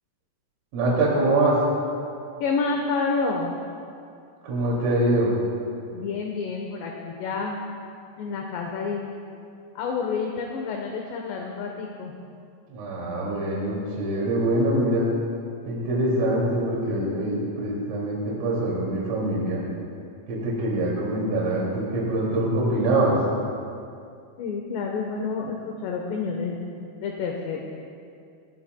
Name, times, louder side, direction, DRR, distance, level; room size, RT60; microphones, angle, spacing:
voice 1, 0.7-1.6 4.4-5.3 12.7-15.1 15.7-19.6 20.3-23.2, right 1 dB, 75° right, -5 dB, 5.2 m, -24 dB
voice 2, 2.4-3.5 5.9-7.6 8.2-9.1 9.8-12.1 24.4-26.6 27.0-27.6, left 4 dB, 70° left, 0 dB, 2.9 m, -29 dB
28.0 x 17.0 x 2.3 m, 2.4 s
omnidirectional pair, 6.0 m